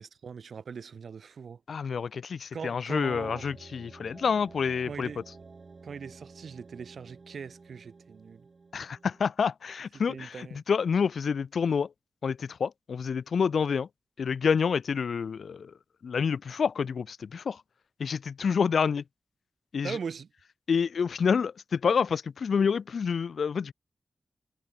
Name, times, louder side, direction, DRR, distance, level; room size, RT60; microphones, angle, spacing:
voice 1, 0.0-1.6 2.5-3.5 4.9-5.2 5.8-8.5 10.1-10.6 19.8-20.3, right 6 dB, 85° right, 2.8 m, -40 dB
voice 2, 1.7-5.1 8.7-11.9 12.2-13.9 14.2-15.7 16.0-17.6 18.0-19.0 19.7-20.0 20.7-23.7, left 6 dB, 85° left, 0.7 m, -28 dB
sound 1, 3.1-9.3, right 4 dB, 50° right, 6.5 m, -51 dB
wide cardioid pair, 100°, 0 cm